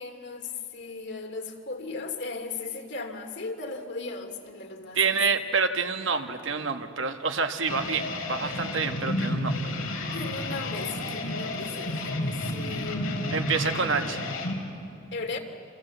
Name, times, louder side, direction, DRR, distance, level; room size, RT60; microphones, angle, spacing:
voice 1, 0.0-5.1 10.1-13.4 13.7-14.0 15.1-15.4, left 3 dB, 60° left, 4 dB, 2.7 m, -37 dB
voice 2, 4.9-9.6 13.3-14.3, right 5 dB, 65° right, 6 dB, 1.6 m, -27 dB
sound 1, 7.7-14.5, left 1 dB, 85° left, 4.5 m, -31 dB
27.5 x 26.0 x 8.1 m, 2.9 s
head